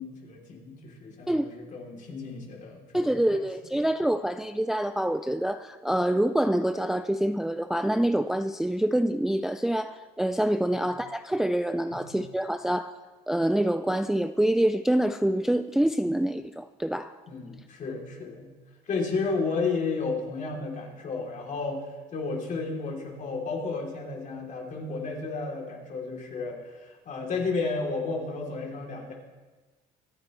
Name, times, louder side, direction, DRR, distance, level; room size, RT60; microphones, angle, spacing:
voice 1, 0.0-3.2 10.6-10.8 11.9-12.1 17.3-18.5 18.9-29.1, left 4 dB, 50° left, 3.1 m, -32 dB
voice 2, 2.9-12.9 13.3-17.1, right 1 dB, ahead, 0.3 m, -26 dB
24.5 x 9.6 x 3.2 m
cardioid pair, 110°, 17 cm